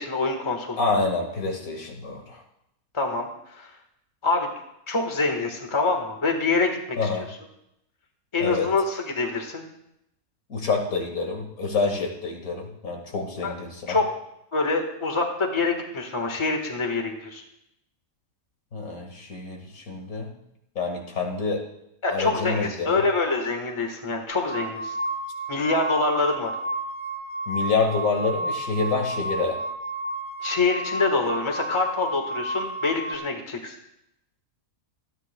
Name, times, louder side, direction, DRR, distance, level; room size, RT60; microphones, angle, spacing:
voice 1, 0.0-0.8 2.9-3.7 4.2-4.5 4.9-7.2 8.3-9.6 13.4-13.5 13.9-14.1 14.5-17.4 22.0-25.0 25.5-26.5 30.4-33.7, left 3 dB, 20° left, 3 dB, 1.4 m, -25 dB
voice 2, 0.8-2.4 7.0-7.3 8.4-8.7 10.5-14.0 18.7-20.3 20.8-21.6 22.1-23.0 27.5-29.6, left 4 dB, 70° left, 2 dB, 2.2 m, -27 dB
sound 1, 24.3-33.2, right 2 dB, 90° right, 1.4 m, -32 dB
26.0 x 9.9 x 2.2 m, 0.82 s
omnidirectional pair, 1.6 m